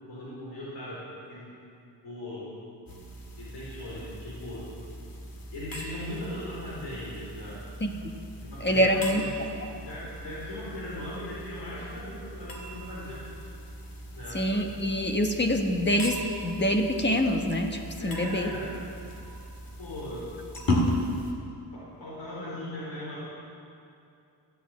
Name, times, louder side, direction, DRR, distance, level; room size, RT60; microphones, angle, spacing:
voice 1, 0.1-1.0 1.3-1.4 2.0-2.5 3.4-4.6 5.5-7.6 8.4-9.3 9.8-13.2 14.1-14.4 18.0-18.7 19.8-20.3 21.7-23.3, left 1 dB, 85° left, -7 dB, 4.2 m, -38 dB
sound 1, 2.9-21.3, left 1 dB, 55° left, 2.1 m, -37 dB
voice 2, 8.6-9.2 14.3-18.5, equal, 25° left, 3 dB, 1.3 m, -25 dB
14.0 x 9.9 x 8.3 m, 2.6 s
wide cardioid pair, 115°, 42 cm